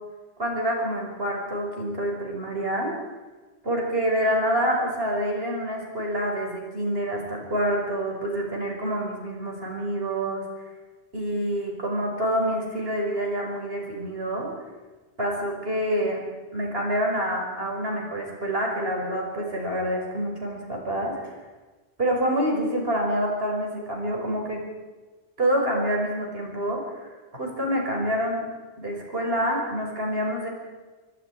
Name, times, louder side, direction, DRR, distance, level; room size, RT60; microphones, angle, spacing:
voice 1, 0.4-2.9 3.6-10.5 11.1-14.5 15.2-16.2 16.5-21.3 22.0-24.6 25.4-28.4 28.8-30.5, equal, 60° right, -1 dB, 5.9 m, -27 dB
24.5 x 23.0 x 4.9 m, 1.3 s
omnidirectional pair, 1.1 m